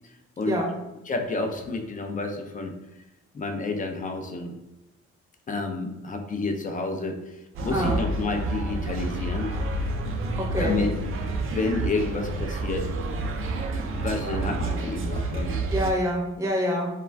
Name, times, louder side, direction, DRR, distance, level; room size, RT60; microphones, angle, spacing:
voice 1, 1.1-2.7 3.3-4.5 5.5-9.5 10.6-10.9 11.4-12.9 13.8-15.7, left 3 dB, 25° left, 5 dB, 0.4 m, -30 dB
sound 1, 7.5-15.9, right 2 dB, 45° right, 0.4 m, -29 dB
voice 2, 7.7-8.0 10.5-10.8 15.7-16.9, equal, 10° right, -2 dB, 0.7 m, -26 dB
2.3 x 2.2 x 3.3 m, 0.97 s
cardioid pair, 90°, 30 cm